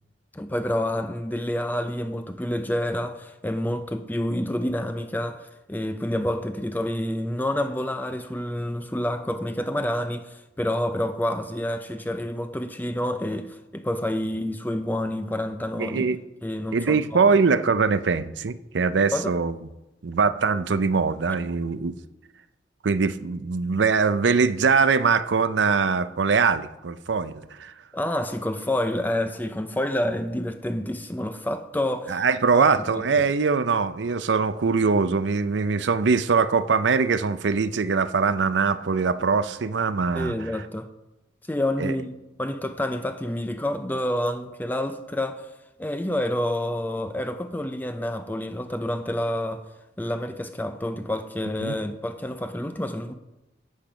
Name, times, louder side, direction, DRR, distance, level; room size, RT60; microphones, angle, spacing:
voice 1, 0.3-16.0 16.4-17.3 19.1-19.3 27.9-32.2 32.5-33.0 40.1-40.9 41.5-42.1 42.4-45.5 45.8-49.6 50.0-53.1, left 1 dB, 10° left, 0.5 m, -28 dB
voice 2, 15.8-16.2 16.7-19.5 20.0-22.0 22.8-27.7 32.1-40.5 41.8-41.9 51.6-51.8, right 5 dB, 80° right, 0.6 m, -22 dB
12.0 x 8.7 x 5.1 m
head